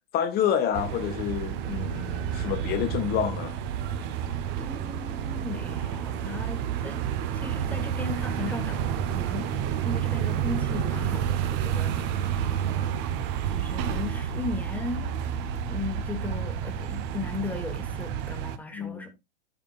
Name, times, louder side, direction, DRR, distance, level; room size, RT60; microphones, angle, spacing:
voice 1, 0.1-3.6 18.7-19.1, left 9 dB, 30° left, 1.4 m, -28 dB
sound 1, 0.7-18.6, right 9 dB, 35° right, 0.9 m, -30 dB
Bowed string instrument, 1.3-7.1, right 7 dB, 65° right, 1.6 m, -43 dB
voice 2, 4.5-9.6 9.8-13.0 13.5-15.1 15.5-19.1, left 4 dB, 5° left, 1.4 m, -37 dB
14.5 x 5.1 x 2.4 m
hypercardioid pair, 125°, 31 cm